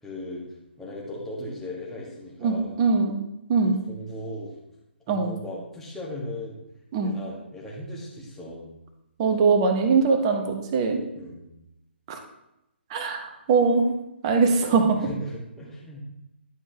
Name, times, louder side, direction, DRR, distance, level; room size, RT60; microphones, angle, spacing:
voice 1, 0.0-0.4 0.8-2.8 3.6-4.5 5.1-6.6 7.0-8.6 11.1-11.5 15.0-16.0, left 1 dB, 5° left, -4 dB, 1.4 m, -37 dB
voice 2, 2.4-3.2 3.5-3.8 5.1-5.3 6.9-7.1 9.2-11.0 12.1-12.2 12.9-13.9 14.2-15.1, right 4 dB, 25° right, 5 dB, 0.9 m, -22 dB
11.0 x 5.4 x 2.8 m, 0.88 s
figure-of-eight pair, 135°, 6 cm